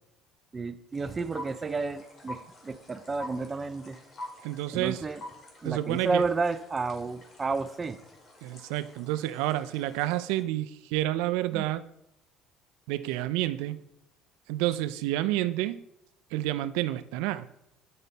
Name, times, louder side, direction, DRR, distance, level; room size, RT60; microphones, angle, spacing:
voice 1, 0.5-4.0 4.7-5.2 5.6-8.0 11.5-11.6, right 4 dB, 25° right, 11 dB, 0.4 m, -31 dB
sound 1, 0.9-10.4, left 1 dB, 40° left, 2.0 m, -47 dB
voice 2, 4.4-5.0 5.6-6.2 8.4-11.9 12.9-13.8 14.5-15.8 16.3-17.5, right 15 dB, 90° right, 12 dB, 0.3 m, -29 dB
8.3 x 5.4 x 4.0 m, 0.79 s
cardioid pair, 115°, 0 cm